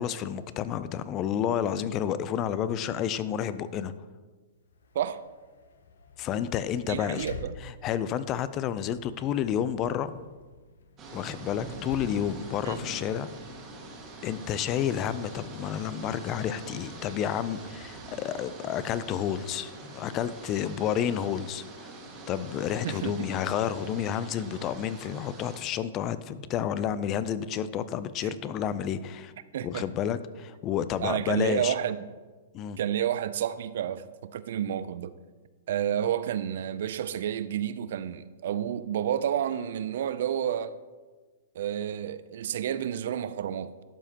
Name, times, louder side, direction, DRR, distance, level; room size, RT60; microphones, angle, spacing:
voice 1, 0.0-3.9 6.2-7.3 7.6-10.2 11.1-13.3 14.2-21.9 22.3-29.3 29.6-31.7 32.5-32.8, left 9 dB, 30° left, 0.3 m, -30 dB
sound 1, 4.5-19.9, left 3 dB, 80° left, 0.6 m, -50 dB
voice 2, 6.8-7.5 12.6-12.8 22.8-23.3 28.2-28.3 29.5-29.9 31.0-32.1 32.8-35.2 35.7-40.7 41.6-43.7, right 10 dB, 65° right, 0.3 m, -30 dB
sound 2, 11.0-25.6, right 2 dB, 25° right, 1.6 m, -44 dB
12.0 x 4.9 x 2.9 m
hypercardioid pair, 130°, 0 cm